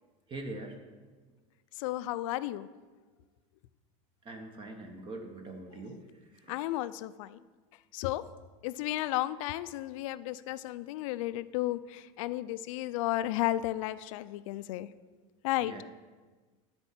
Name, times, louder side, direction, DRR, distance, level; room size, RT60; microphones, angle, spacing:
voice 1, 0.3-0.7 4.2-6.0 6.4-6.5 15.6-15.8, right 2 dB, 30° right, 4 dB, 1.1 m, -42 dB
voice 2, 1.8-2.7 6.5-7.4 7.9-8.2 8.6-14.9 15.4-15.7, left 15 dB, 75° left, 15 dB, 0.4 m, -33 dB
10.5 x 4.3 x 7.4 m, 1.4 s
supercardioid pair, 125°, 17 cm